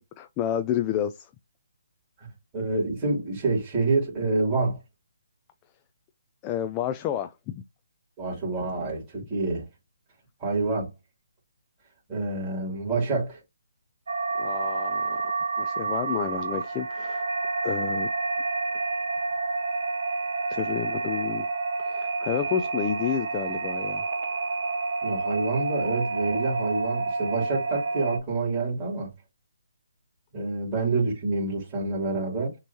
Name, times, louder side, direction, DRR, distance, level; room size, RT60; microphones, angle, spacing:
voice 1, 0.2-1.3 6.4-7.6 14.4-15.3 15.6-17.3 17.6-18.1 20.5-21.5 21.8-24.1, left 9 dB, 20° left, 0.4 m, -30 dB
voice 2, 2.5-4.8 8.2-9.6 10.4-10.9 12.1-13.4 25.0-29.1 30.3-32.6, right 3 dB, 20° right, 2.9 m, -27 dB
sound 1, 14.1-28.2, right 3 dB, 70° right, 1.1 m, -29 dB
6.1 x 3.0 x 2.8 m
hypercardioid pair, 155°, 0 cm